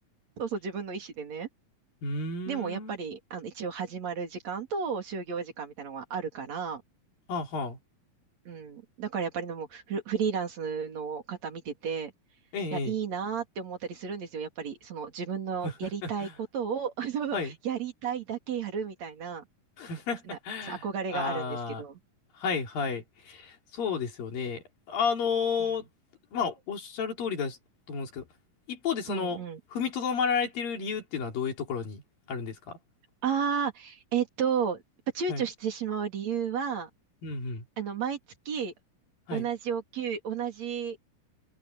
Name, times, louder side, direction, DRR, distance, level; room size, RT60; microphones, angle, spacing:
voice 1, 0.4-1.5 2.5-6.8 8.5-12.1 12.7-16.3 16.5-19.4 20.3-20.4 20.7-22.0 29.1-29.6 33.2-34.8 35.1-36.9 37.8-38.2 38.5-38.7 39.3-41.0, right 7 dB, 50° right, 4.2 m, -33 dB
voice 2, 2.0-3.0 7.3-7.8 12.5-13.0 15.6-15.7 16.0-16.3 17.3-17.5 19.8-20.8 21.1-21.9 22.4-25.9 26.3-27.6 27.9-28.2 28.7-29.4 29.7-32.0 32.3-32.8 35.3-35.5 37.2-37.7 39.3-39.5, left 5 dB, 85° left, 5.5 m, -32 dB
omnidirectional pair, 4.0 m